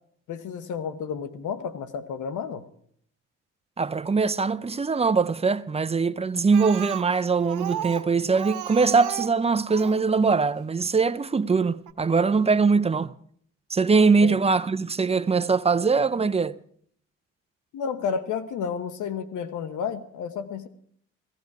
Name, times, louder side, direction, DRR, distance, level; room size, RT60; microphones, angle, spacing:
voice 1, 0.3-2.6 14.2-14.4 17.7-20.7, left 6 dB, 80° left, 1.1 m, -31 dB
voice 2, 3.8-13.1 13.7-16.6, right 4 dB, 20° right, 0.6 m, -22 dB
Speech, 6.5-10.1 11.0-11.1 11.5-11.6 11.9-12.0, right 13 dB, 90° right, 1.1 m, -34 dB
16.0 x 16.0 x 4.8 m
cardioid pair, 90°, 30 cm